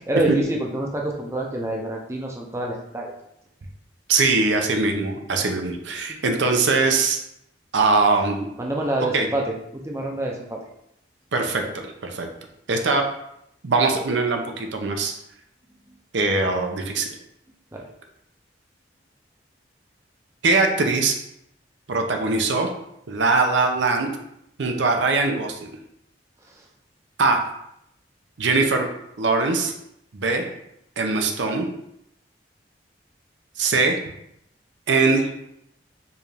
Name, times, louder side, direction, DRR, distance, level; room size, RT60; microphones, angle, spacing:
voice 1, 0.0-3.2 8.6-10.7 17.7-17.9 26.4-26.7, right 1 dB, 15° right, -1 dB, 0.4 m, -27 dB
voice 2, 4.1-7.2 7.7-8.5 9.1-9.3 11.3-12.3 12.7-13.0 13.6-15.1 16.1-17.1 20.4-21.1 21.9-22.7 23.1-24.1 24.6-25.7 27.2-27.4 28.4-28.9 29.2-29.7 30.1-30.5 31.0-31.7 33.6-34.0 34.9-35.3, right 3 dB, 80° right, 4 dB, 0.6 m, -21 dB
4.7 x 2.5 x 3.3 m, 0.77 s
head